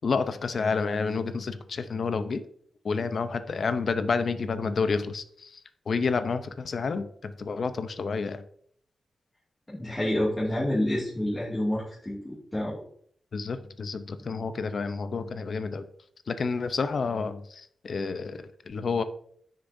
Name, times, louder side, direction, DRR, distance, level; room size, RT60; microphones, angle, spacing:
voice 1, 0.0-2.4 2.8-5.6 5.9-8.4 13.3-15.9 16.3-19.0, left 4 dB, 55° left, 10 dB, 0.7 m, -29 dB
voice 2, 9.7-12.2 12.5-12.8, left 1 dB, 15° left, -10 dB, 2.4 m, -28 dB
9.6 x 6.6 x 2.7 m, 0.63 s
wide cardioid pair, 135°, 0 cm